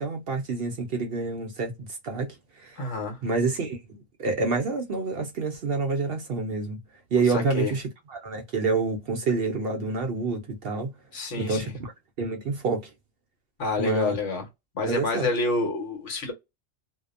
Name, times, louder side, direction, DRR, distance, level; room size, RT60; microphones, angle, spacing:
voice 1, 0.0-2.9 3.2-6.8 7.1-7.8 8.1-10.9 11.4-11.9 12.2-12.9 13.8-14.1 14.9-15.3, right 3 dB, 60° right, 0.7 m, -28 dB
voice 2, 2.8-3.2 7.3-7.7 11.1-11.7 13.6-14.4 14.7-16.3, left 2 dB, 65° left, 1.3 m, -28 dB
2.7 x 2.0 x 2.4 m
omnidirectional pair, 1.3 m